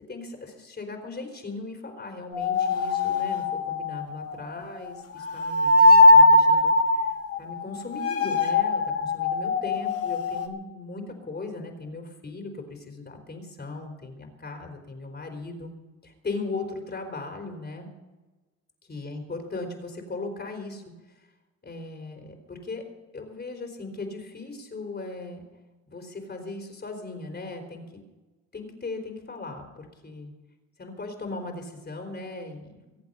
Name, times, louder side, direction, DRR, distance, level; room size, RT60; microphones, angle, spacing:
voice 1, 0.1-6.7 7.4-15.7 16.0-17.9 18.9-20.8 21.6-22.8 23.1-25.4 25.9-28.0 28.5-30.3 30.8-32.8, left 3 dB, 35° left, 4 dB, 4.2 m, -38 dB
sound 1, 2.3-4.9 5.2-10.5, left 2 dB, 50° left, 1.9 m, -20 dB
24.5 x 8.5 x 5.5 m, 1.2 s
cardioid pair, 90°, 30 cm